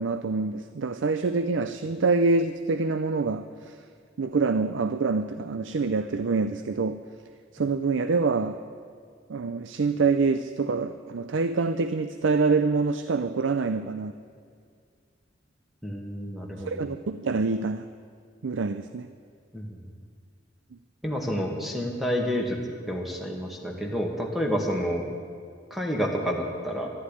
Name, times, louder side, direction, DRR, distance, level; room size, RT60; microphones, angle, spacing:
voice 1, 0.0-3.8 4.2-7.0 7.5-8.6 9.3-14.1 16.7-17.9 18.4-19.1, right 4 dB, 75° right, 11 dB, 0.5 m, -26 dB
voice 2, 15.8-16.8 19.5-19.8 21.0-25.0 25.7-26.9, equal, ahead, 0 dB, 2.0 m, -29 dB
12.0 x 11.0 x 9.9 m, 2.2 s
head